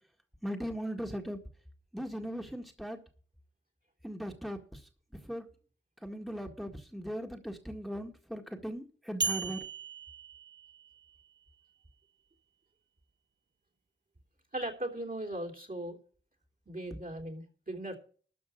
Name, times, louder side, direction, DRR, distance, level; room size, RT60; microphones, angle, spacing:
voice 1, 0.4-1.4 1.9-3.0 4.0-4.8 5.2-5.5 6.0-9.6, equal, ahead, 3 dB, 1.8 m, -38 dB
sound 1, 9.2-11.3, right 5 dB, 65° right, 0.8 m, -37 dB
voice 2, 14.5-16.0 16.6-18.0, right 1 dB, 45° right, 4 dB, 3.3 m, -38 dB
13.0 x 5.2 x 8.4 m, 0.41 s
cardioid pair, 40°, 20 cm